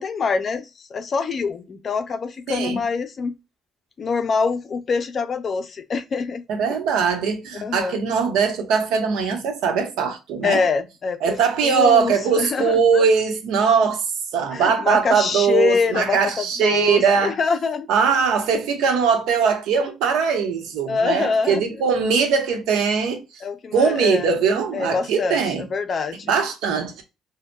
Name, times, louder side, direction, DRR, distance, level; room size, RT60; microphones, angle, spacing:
voice 1, 0.0-3.3 4.0-6.4 7.6-8.0 10.4-11.4 11.6-13.1 14.5-17.9 20.9-21.6 23.4-24.3 24.7-26.3, left 5 dB, 35° left, 0.4 m, -24 dB
voice 2, 2.5-2.8 6.5-10.6 11.2-14.0 14.3-17.4 17.9-23.2 23.7-25.7 26.3-27.0, right 6 dB, 90° right, 0.9 m, -21 dB
5.1 x 2.1 x 2.3 m
cardioid pair, 135°, 0 cm